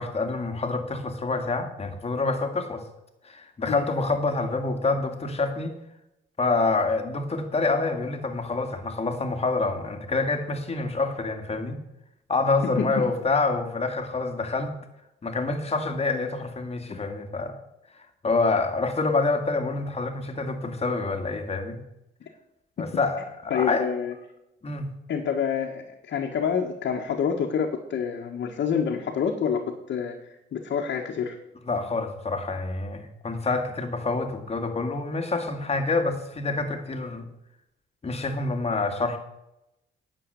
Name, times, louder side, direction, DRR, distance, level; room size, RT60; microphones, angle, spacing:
voice 1, 0.0-2.8 3.2-5.7 6.4-11.8 12.3-14.8 15.2-17.6 18.2-21.8 22.8-23.9 24.6-24.9 31.7-37.3 38.0-39.2, left 3 dB, 30° left, 6 dB, 2.0 m, -27 dB
voice 2, 23.5-24.2 25.1-29.6 29.9-31.4, left 7 dB, 65° left, 0 dB, 1.6 m, -27 dB
10.0 x 7.0 x 7.7 m, 0.88 s
cardioid pair, 90°, 20 cm